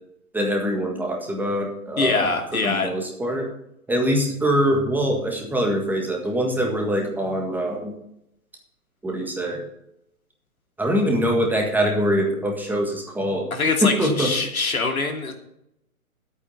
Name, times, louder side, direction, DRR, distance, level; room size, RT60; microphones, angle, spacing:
voice 1, 0.3-2.3 2.6-3.5 3.9-7.9 9.0-9.6 10.8-13.5 13.8-14.3, equal, 5° right, 0 dB, 1.6 m, -23 dB
voice 2, 2.0-2.9 13.5-15.3, left 3 dB, 70° left, 3 dB, 2.9 m, -23 dB
12.0 x 8.8 x 5.6 m, 0.78 s
figure-of-eight pair, 130°, 44 cm